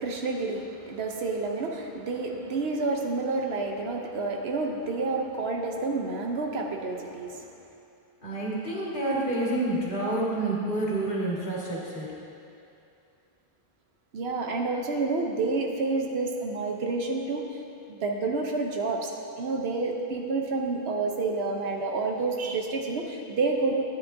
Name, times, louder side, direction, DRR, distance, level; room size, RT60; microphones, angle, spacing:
voice 1, 0.0-7.5 14.1-17.5 17.9-23.8, right 3 dB, 75° right, 2 dB, 1.1 m, -29 dB
voice 2, 8.2-12.1, right 2 dB, 50° left, -6 dB, 2.0 m, -28 dB
12.5 x 9.4 x 2.7 m, 2.6 s
omnidirectional pair, 1.1 m